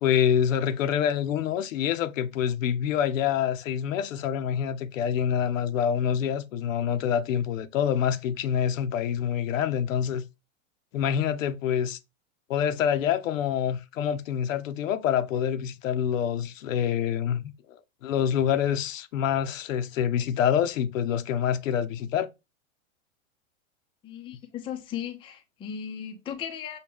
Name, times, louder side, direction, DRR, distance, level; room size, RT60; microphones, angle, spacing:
voice 1, 0.0-10.2 10.9-12.0 12.5-17.5 18.0-22.3, left 9 dB, 75° left, 0.7 m, -26 dB
voice 2, 24.0-26.8, left 8 dB, 15° left, 0.4 m, -36 dB
5.5 x 2.2 x 3.4 m
hypercardioid pair, 120°, 40 cm